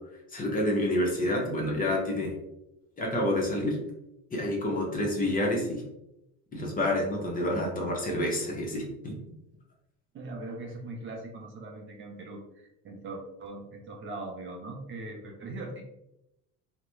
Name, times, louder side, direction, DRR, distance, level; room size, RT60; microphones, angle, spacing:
voice 1, 0.3-2.3 3.0-3.8 4.3-5.8 6.5-9.1, left 1 dB, 25° left, -1 dB, 0.7 m, -28 dB
voice 2, 10.1-15.8, right 2 dB, 40° right, 1 dB, 0.5 m, -40 dB
2.3 x 2.1 x 3.0 m, 0.87 s
cardioid pair, 120°, 31 cm